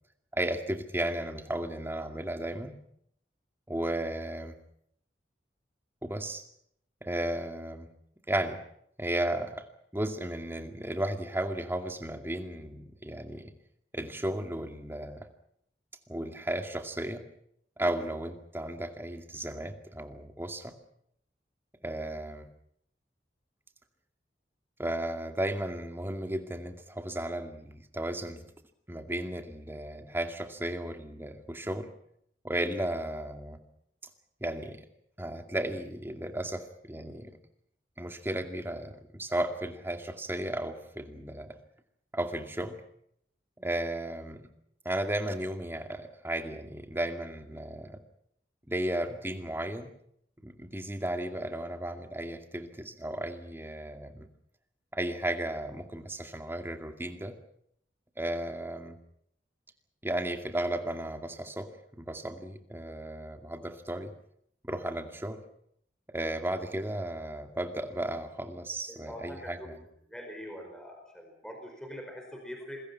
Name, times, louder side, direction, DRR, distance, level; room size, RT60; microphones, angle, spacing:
voice 1, 0.3-2.7 3.7-4.6 6.0-6.4 7.0-7.9 8.3-8.6 9.0-9.7 9.9-13.5 13.9-15.3 16.1-17.3 17.8-20.7 21.8-22.5 24.8-28.4 28.9-31.9 32.4-33.6 34.4-34.9 35.2-37.4 38.0-41.6 42.1-42.8 43.6-44.5 44.8-48.0 48.7-49.9 50.4-54.3 54.9-57.4 58.2-59.0 60.0-64.1 64.6-65.4 66.1-69.8, right 1 dB, 15° right, 6 dB, 2.3 m, -34 dB
voice 2, 68.9-69.6 70.0-72.8, equal, 5° left, 2 dB, 4.8 m, -43 dB
28.0 x 21.5 x 5.9 m, 0.70 s
head